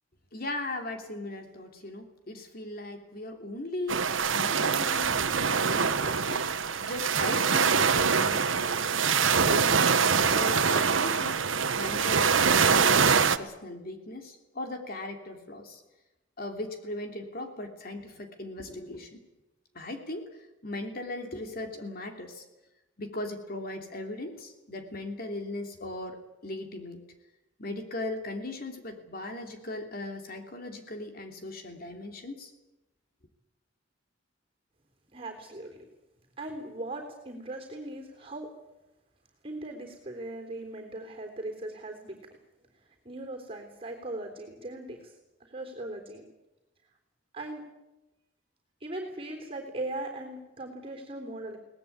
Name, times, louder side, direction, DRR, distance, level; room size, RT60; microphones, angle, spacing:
voice 1, 0.3-9.2 9.4-15.8 16.4-19.2 19.7-20.3 20.6-22.4 23.0-27.0 27.6-32.5, left 2 dB, 50° left, 4 dB, 3.0 m, -38 dB
sound 1, 3.9-13.4, right 6 dB, 85° right, 1.2 m, -24 dB
voice 2, 35.1-35.8 36.4-38.5 39.4-42.2 43.1-45.1 45.4-46.2 47.3-47.6 48.8-51.6, right 2 dB, 30° right, 3 dB, 3.6 m, -39 dB
23.0 x 19.0 x 8.6 m, 0.99 s
head